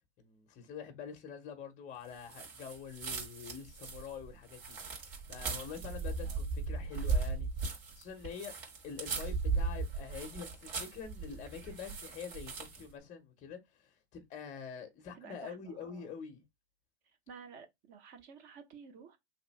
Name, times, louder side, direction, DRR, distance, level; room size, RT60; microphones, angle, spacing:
voice 1, 0.2-7.5 7.9-8.5 8.8-16.4, left 6 dB, 20° left, 0.7 m, -46 dB
sound 1, 2.2-12.9, right 4 dB, 55° right, 1.7 m, -37 dB
voice 2, 15.1-16.1 17.3-19.2, right 6 dB, 35° right, 0.8 m, -52 dB
3.0 x 2.5 x 3.1 m
figure-of-eight pair, 100°, 34 cm